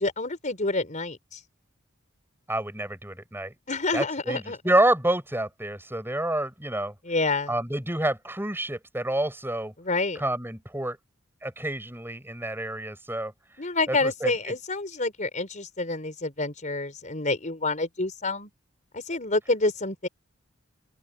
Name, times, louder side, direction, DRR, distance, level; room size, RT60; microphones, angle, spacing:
voice 1, 0.0-1.4 3.7-4.6 7.0-7.5 9.8-10.2 13.6-18.5 18.9-20.1, left 3 dB, 40° left, 4.9 m, -28 dB
voice 2, 2.5-3.5 3.9-6.9 7.5-9.7 10.1-11.0 11.4-13.3 13.9-14.5, right 1 dB, 10° right, 6.7 m, -28 dB
open air
head